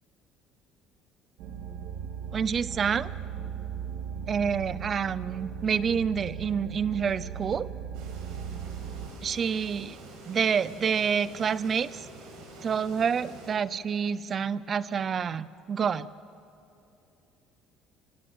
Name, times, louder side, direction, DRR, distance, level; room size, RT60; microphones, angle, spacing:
sound 1, 1.4-9.1, right 8 dB, 70° right, 2.2 m, -38 dB
voice 1, 2.3-3.1 4.3-7.7 9.2-10.0 10.3-12.1 12.6-16.1, right 7 dB, 25° right, 17 dB, 0.6 m, -28 dB
sound 2, 7.9-13.5, right 2 dB, 90° right, 7.8 m, -47 dB
28.5 x 26.0 x 8.0 m, 2.7 s
cardioid pair, 175°, 0 cm